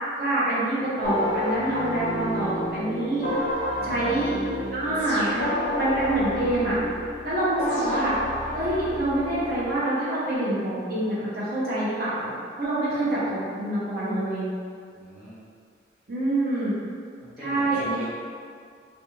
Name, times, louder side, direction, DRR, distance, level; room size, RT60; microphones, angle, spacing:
voice 1, 0.2-3.3 3.8-4.3 4.7-5.5 5.8-6.8 7.2-8.1 8.5-12.3 12.6-14.5 16.1-16.8 17.4-18.0, right 1 dB, 55° right, -9 dB, 0.6 m, -26 dB
sound 1, 1.0-9.8, left 1 dB, 50° left, 0.4 m, -30 dB
voice 2, 3.7-4.3 12.9-13.0 14.9-15.4 17.2-18.0, equal, 5° right, -12 dB, 0.7 m, -40 dB
sound 2, 4.9-6.2 7.7-9.0, right 1 dB, 75° right, 1.2 m, -41 dB
2.4 x 2.1 x 2.9 m, 2.1 s
head